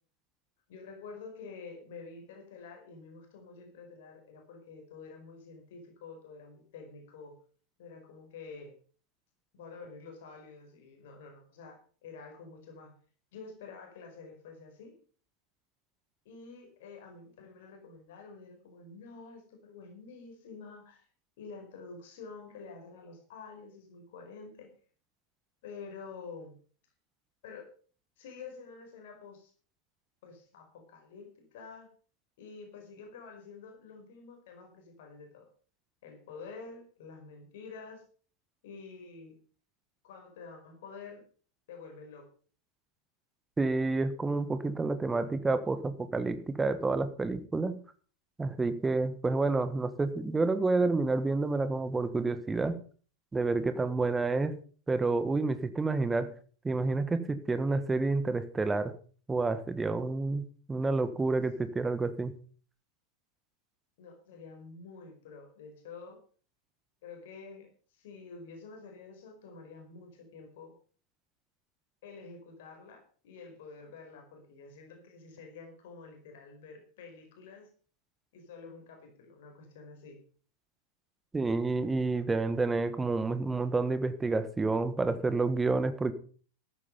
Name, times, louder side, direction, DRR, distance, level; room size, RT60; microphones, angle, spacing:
voice 1, 0.7-7.4 7.8-8.8 9.5-13.0 13.3-15.0 16.2-21.1 21.4-24.7 25.6-26.6 27.4-27.7 28.2-29.5 30.2-31.9 32.4-35.5 36.0-38.0 38.6-39.4 40.0-41.2 41.7-42.3 64.0-66.2 67.0-70.7 72.0-77.7 78.3-80.2, left 4 dB, 55° left, 4 dB, 4.9 m, -48 dB
voice 2, 43.6-47.8 48.4-52.7 53.3-54.6 54.9-56.3 56.6-58.9 59.3-62.3 81.3-86.1, right 3 dB, 10° right, 12 dB, 1.5 m, -29 dB
14.0 x 11.5 x 5.5 m, 0.42 s
figure-of-eight pair, 90°, 0 cm